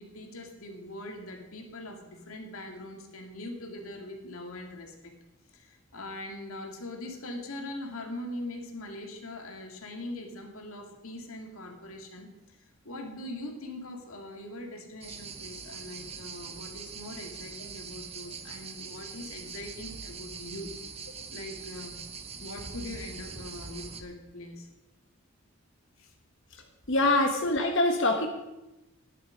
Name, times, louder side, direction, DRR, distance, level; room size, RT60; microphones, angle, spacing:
voice 1, 0.0-5.1 5.5-12.6 12.8-20.7 21.3-22.0 22.4-24.7 26.0-26.1, left 1 dB, 85° left, 3 dB, 2.2 m, -42 dB
sound 1, 15.0-24.0, right 5 dB, 30° right, 0.8 m, -43 dB
voice 2, 26.9-28.3, left 2 dB, 60° left, 3 dB, 1.2 m, -24 dB
11.5 x 10.5 x 5.0 m, 0.97 s
head